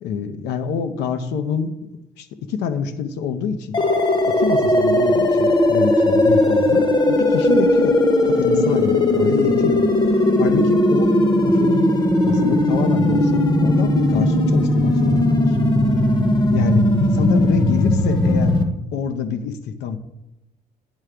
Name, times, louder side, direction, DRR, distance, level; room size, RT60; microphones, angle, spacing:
voice 1, 0.0-1.8 2.2-3.8 4.2-8.0 8.2-9.8 10.4-11.1 11.4-11.9 12.2-15.6 16.5-18.6 18.9-20.0, left 6 dB, 85° left, 9 dB, 0.6 m, -26 dB
sound 1, 3.7-18.6, left 1 dB, 25° left, 0.8 m, -17 dB
9.1 x 3.3 x 4.8 m, 0.91 s
cardioid pair, 110°, 17 cm